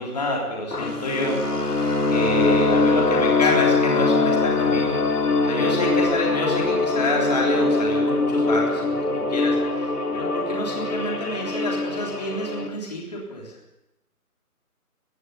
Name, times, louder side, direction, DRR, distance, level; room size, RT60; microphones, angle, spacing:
voice 1, 0.0-1.4 2.1-5.0 5.4-9.0 9.3-13.5, left 1 dB, 25° left, -1 dB, 3.6 m, -27 dB
sound 1, 0.7-12.7, left 3 dB, 90° left, 3.3 m, -22 dB
19.5 x 16.0 x 8.5 m, 0.91 s
figure-of-eight pair, 175°, 45 cm